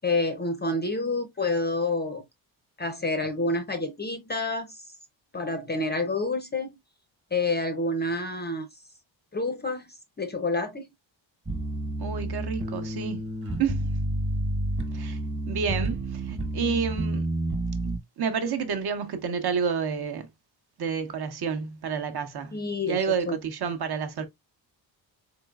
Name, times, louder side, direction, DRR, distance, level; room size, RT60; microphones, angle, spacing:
voice 1, 0.0-2.2 2.8-4.8 5.3-6.8 7.3-8.7 9.3-10.9 22.5-23.0 23.3-23.4, left 2 dB, 20° left, 0.5 m, -28 dB
sound 1, 11.5-18.0, right 1 dB, 25° right, 1.2 m, -30 dB
voice 2, 12.0-13.2 13.6-13.9 14.9-15.2 15.5-17.3 17.8-20.3 20.8-24.3, right 6 dB, 50° right, 0.9 m, -30 dB
4.0 x 3.7 x 2.3 m
wide cardioid pair, 165°, 48 cm